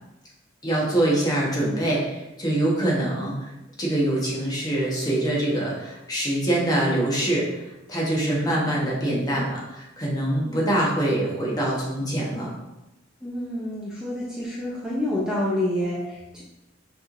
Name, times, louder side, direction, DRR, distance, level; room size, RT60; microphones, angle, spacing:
voice 1, 0.6-3.3 3.8-7.5 7.9-12.5, right 1 dB, 20° left, -5 dB, 1.1 m, -24 dB
voice 2, 13.2-16.4, left 1 dB, 5° right, -7 dB, 0.6 m, -28 dB
6.3 x 3.2 x 2.6 m, 0.97 s
head